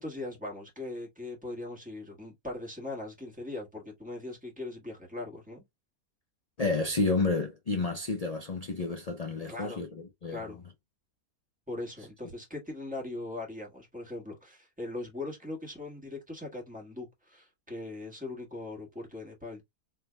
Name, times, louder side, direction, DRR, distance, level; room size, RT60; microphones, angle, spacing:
voice 1, 0.0-5.6 9.5-9.8 10.3-10.6 11.7-19.6, left 2 dB, 5° right, 1.6 m, -40 dB
voice 2, 6.6-9.9 10.2-10.4, left 3 dB, 60° left, 0.4 m, -30 dB
4.5 x 3.3 x 2.2 m
omnidirectional pair, 1.7 m